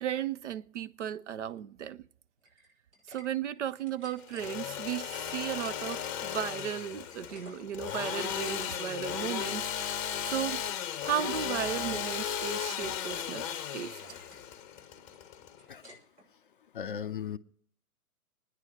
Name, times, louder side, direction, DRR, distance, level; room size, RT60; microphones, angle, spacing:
voice 1, 0.0-2.1 3.1-10.6 11.0-13.5 13.7-14.2, right 10 dB, 55° right, 0.6 m, -35 dB
sound 1, 2.4-3.3 3.6-4.5 5.2-6.2 6.5-8.9 9.2-9.5 9.9-10.6 10.9-11.7 12.2-13.3 13.6-13.7 14.0-14.5 14.8-16.3, equal, 90° right, 5.8 m, -55 dB
Engine / Sawing, 4.2-15.9, left 9 dB, 20° left, 0.8 m, -36 dB
voice 2, 16.7-17.4, left 8 dB, 40° left, 0.4 m, -36 dB
25.5 x 9.8 x 3.2 m
figure-of-eight pair, 125°, 44 cm